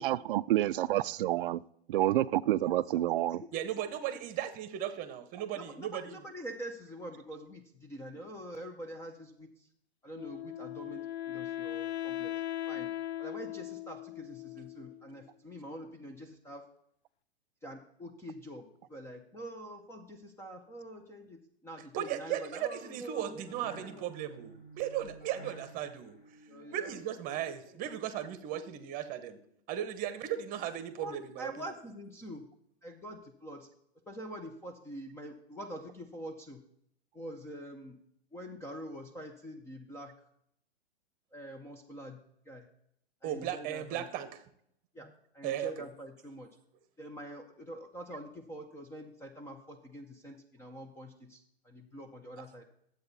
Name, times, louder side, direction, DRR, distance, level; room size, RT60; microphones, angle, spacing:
voice 1, 0.0-1.6 1.9-3.4, right 14 dB, 55° right, 0.4 m, -28 dB
voice 2, 3.0-3.4 5.6-9.5 10.0-12.4 12.7-12.9 13.2-16.7 17.6-24.0 26.5-27.0 31.0-32.5 32.8-33.7 34.1-36.6 37.1-38.0 38.3-40.1 41.3-42.2 42.5-42.7 43.2-44.0 44.9-46.5 47.0-52.7, equal, 10° left, 0.6 m, -45 dB
voice 3, 3.5-6.2 21.9-26.2 26.7-29.4 29.7-31.7 43.2-44.3 45.4-45.9, right 11 dB, 25° right, 1.0 m, -36 dB
Wind instrument woodwind instrument, 10.1-15.2, left 13 dB, 75° left, 0.6 m, -39 dB
sound 1, 22.4-28.8, right 1 dB, 25° left, 2.6 m, -54 dB
11.5 x 8.0 x 4.1 m
hypercardioid pair, 130°, 33 cm